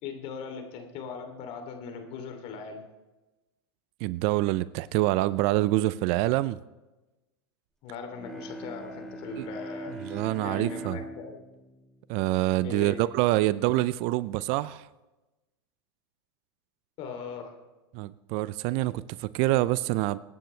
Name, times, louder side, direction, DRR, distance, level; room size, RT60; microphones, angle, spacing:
voice 1, 0.0-2.8 7.8-9.9 10.4-11.4 12.6-13.0 17.0-17.6, left 5 dB, 50° left, 2.9 m, -39 dB
voice 2, 4.0-6.6 9.4-9.5 9.9-11.0 12.1-14.9 17.9-20.2, right 17 dB, 50° right, 0.5 m, -26 dB
Bowed string instrument, 8.1-13.0, right 1 dB, 5° left, 1.5 m, -41 dB
25.5 x 9.2 x 3.3 m
hypercardioid pair, 110°, 13 cm